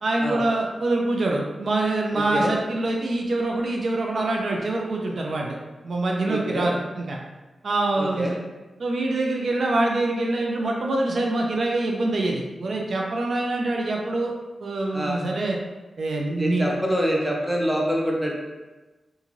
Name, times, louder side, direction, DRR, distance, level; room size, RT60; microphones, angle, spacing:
voice 1, 0.0-5.6 5.8-7.2 7.6-8.4 8.8-14.3 14.6-15.6 16.0-16.7, right 2 dB, 65° right, 0 dB, 0.4 m, -25 dB
voice 2, 2.1-2.5 6.3-6.7 8.0-8.3 14.9-15.2 16.4-18.3, equal, 10° right, -2 dB, 0.6 m, -25 dB
2.8 x 2.5 x 2.5 m, 1.2 s
cardioid pair, 60°, 0 cm